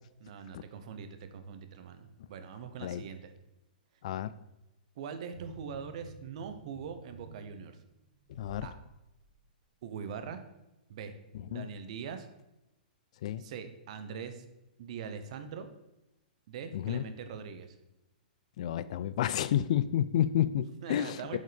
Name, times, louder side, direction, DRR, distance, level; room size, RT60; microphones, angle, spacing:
voice 1, 0.2-3.3 5.0-7.8 8.6-8.8 9.8-10.4 10.9-11.1 11.5-12.3 13.4-14.4 14.8-15.7 16.5-17.7 20.8-21.4, right 6 dB, 45° right, 9 dB, 0.9 m, -42 dB
voice 2, 4.0-4.4 8.3-8.7 11.3-11.7 13.2-13.5 16.7-17.0 18.6-21.4, left 11 dB, 45° left, 16 dB, 0.3 m, -30 dB
sound 1, 5.3-8.7 9.2-9.3, right 3 dB, 65° right, 2.6 m, -51 dB
7.6 x 5.4 x 5.2 m, 0.96 s
hypercardioid pair, 170°, 5 cm